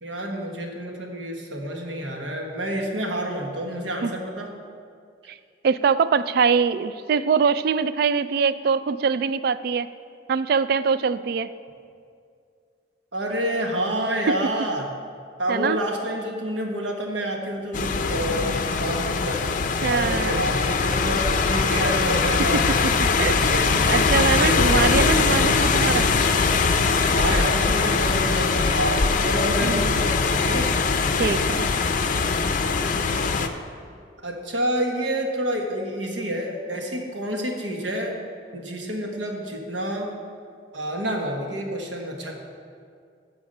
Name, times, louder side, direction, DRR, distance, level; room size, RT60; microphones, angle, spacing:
voice 1, 0.0-4.5 13.1-14.9 15.4-19.4 19.9-22.6 23.7-23.9 24.4-25.0 27.0-30.7 34.2-38.2 38.5-40.1 40.7-42.3, right 1 dB, 85° right, 1 dB, 1.3 m, -28 dB
voice 2, 5.6-9.9 10.3-11.5 15.5-15.8 19.8-20.4 23.2-26.1 29.6-30.0 31.2-31.7, right 5 dB, 55° right, 14 dB, 0.3 m, -23 dB
sound 1, 17.7-33.5, left 4 dB, 45° left, 0.5 m, -21 dB
13.0 x 4.7 x 5.4 m, 2.3 s
head